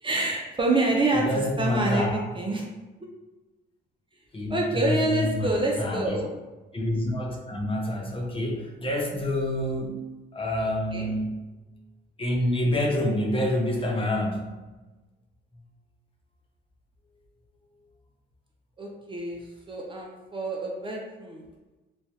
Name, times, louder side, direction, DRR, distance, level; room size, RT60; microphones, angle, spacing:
voice 1, 0.0-2.6 4.5-6.3 10.9-11.1 18.8-19.4 19.7-21.4, right 2 dB, 25° right, -1 dB, 0.5 m, -27 dB
voice 2, 1.1-2.2 4.3-6.2 6.7-10.0 10.3-11.3 12.2-14.5, left 1 dB, 25° left, -1 dB, 0.7 m, -27 dB
3.1 x 2.3 x 2.7 m, 1.2 s
cardioid pair, 90°, 20 cm